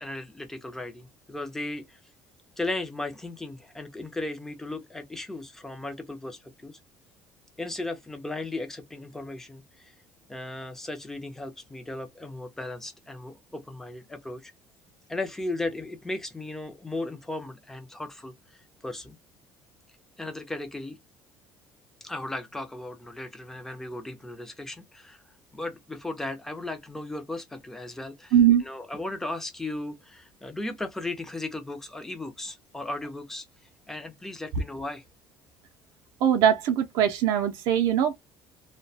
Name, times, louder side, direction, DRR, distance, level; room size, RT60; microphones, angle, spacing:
voice 1, 0.0-2.0 2.6-6.8 7.6-9.9 10.3-14.5 15.1-18.3 18.8-19.2 20.2-21.0 22.0-25.2 25.5-28.4 28.6-33.5 33.9-35.0, left 2 dB, 5° left, 0.4 m, -36 dB
voice 2, 28.3-28.6 36.2-38.2, right 10 dB, 65° right, 0.4 m, -21 dB
2.3 x 2.1 x 2.6 m
cardioid pair, 180°, 7 cm